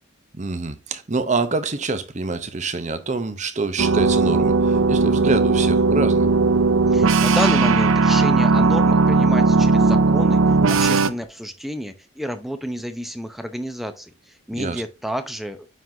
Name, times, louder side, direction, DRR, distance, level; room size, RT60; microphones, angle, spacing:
voice 1, 0.3-6.3 14.5-14.8, right 3 dB, 35° right, 0.8 m, -26 dB
sound 1, 3.8-11.1, right 3 dB, 70° right, 0.6 m, -17 dB
voice 2, 6.9-15.7, equal, ahead, 0.6 m, -30 dB
9.2 x 4.0 x 2.7 m
head